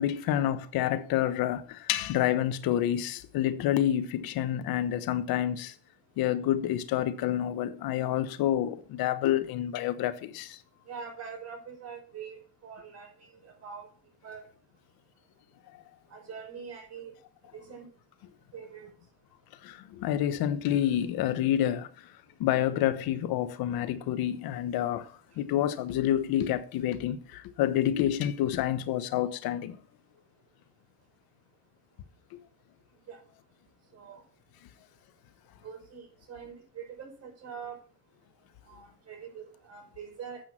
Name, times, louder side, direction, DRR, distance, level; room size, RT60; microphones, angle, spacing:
voice 1, 0.0-5.7 6.2-10.6 19.6-22.1 22.4-29.8 32.3-32.4, left 11 dB, 75° left, 1.1 m, -28 dB
voice 2, 10.9-13.1 13.4-13.9 14.2-14.4 16.1-17.1 17.5-17.8 18.5-18.9 33.1-33.2 33.9-34.2 35.6-37.8 38.7-40.4, right 6 dB, 45° right, 5.2 m, -43 dB
9.0 x 5.8 x 7.4 m
supercardioid pair, 85°, 36 cm